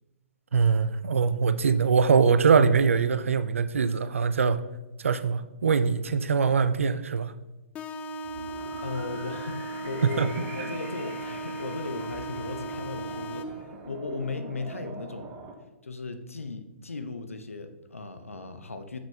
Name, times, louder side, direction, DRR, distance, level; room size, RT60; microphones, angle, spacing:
voice 1, 0.5-4.6 5.0-7.3 10.0-10.3, right 5 dB, 70° right, 13 dB, 0.4 m, -23 dB
sound 1, 7.7-13.7, right 1 dB, 15° left, 0.4 m, -37 dB
sound 2, 8.2-15.5, right 3 dB, 25° right, 0.8 m, -43 dB
voice 2, 8.8-15.3 15.8-19.0, left 3 dB, 85° left, 9 dB, 0.6 m, -37 dB
7.3 x 6.0 x 2.3 m, 1.0 s
figure-of-eight pair, 125°, 7 cm